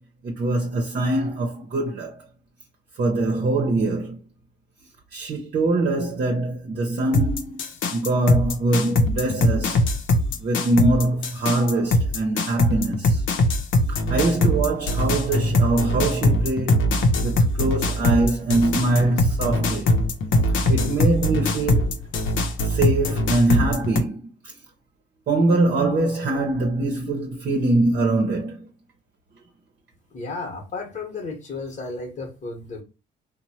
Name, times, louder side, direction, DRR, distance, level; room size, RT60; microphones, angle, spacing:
voice 1, 0.2-2.1 3.0-4.2 5.1-7.6 7.9-9.8 10.4-13.2 13.9-16.9 17.2-19.9 20.4-22.0 22.6-24.2 25.3-28.7, right 2 dB, 50° right, 0.7 m, -23 dB
sound 1, 7.1-24.0, left 1 dB, 75° left, 0.7 m, -22 dB
voice 2, 30.1-32.8, left 3 dB, 40° left, 1.1 m, -33 dB
2.9 x 2.1 x 2.7 m
cardioid pair, 90°, 20 cm